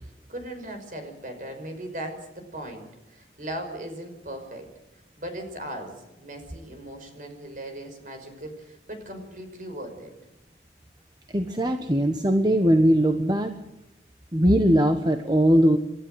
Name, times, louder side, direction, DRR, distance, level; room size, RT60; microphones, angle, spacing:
voice 1, 0.0-4.7 5.2-10.1, right 1 dB, 45° right, 5 dB, 5.6 m, -38 dB
voice 2, 11.3-13.5 14.3-15.8, equal, 25° right, 6 dB, 1.2 m, -20 dB
29.0 x 13.0 x 8.1 m, 0.94 s
head